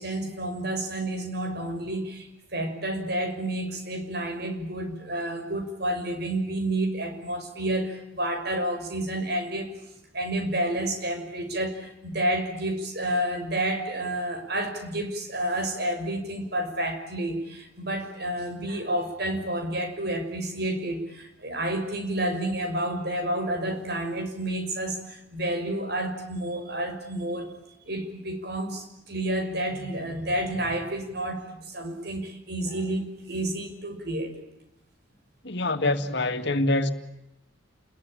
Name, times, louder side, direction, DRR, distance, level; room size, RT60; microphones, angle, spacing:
voice 1, 0.0-9.7 10.1-27.5 27.9-34.4, right 1 dB, 55° right, 6.2 m, -30 dB
voice 2, 35.4-36.9, left 2 dB, 60° left, 2.3 m, -25 dB
29.5 x 22.0 x 8.8 m
head